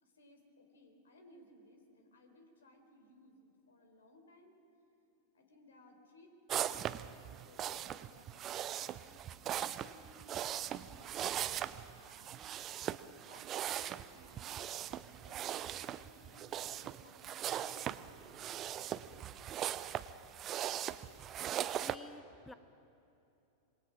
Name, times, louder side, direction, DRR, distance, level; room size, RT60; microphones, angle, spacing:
voice 1, 0.0-4.6 5.3-6.3 6.6-9.0 9.8-12.5 13.1-19.2, left 1 dB, 65° left, 5 dB, 3.5 m, -62 dB
sound 1, 6.5-22.0, right 11 dB, 30° right, 0.6 m, -40 dB
voice 2, 21.0-22.5, left 3 dB, 10° left, 13 dB, 0.9 m, -55 dB
26.5 x 22.5 x 6.2 m, 2.8 s
figure-of-eight pair, 90°, 0 cm